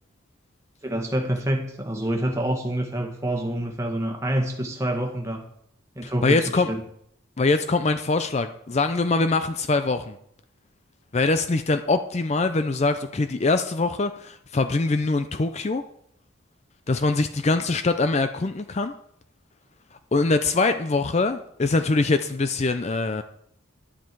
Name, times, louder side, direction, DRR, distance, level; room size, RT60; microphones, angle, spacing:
voice 1, 0.8-5.4 5.9-6.8, right 1 dB, 15° right, 1 dB, 1.7 m, -27 dB
voice 2, 6.0-6.7 7.4-10.2 11.1-15.8 16.9-18.9 20.1-23.2, left 3 dB, 30° left, 9 dB, 0.5 m, -23 dB
11.5 x 10.0 x 4.6 m, 0.72 s
head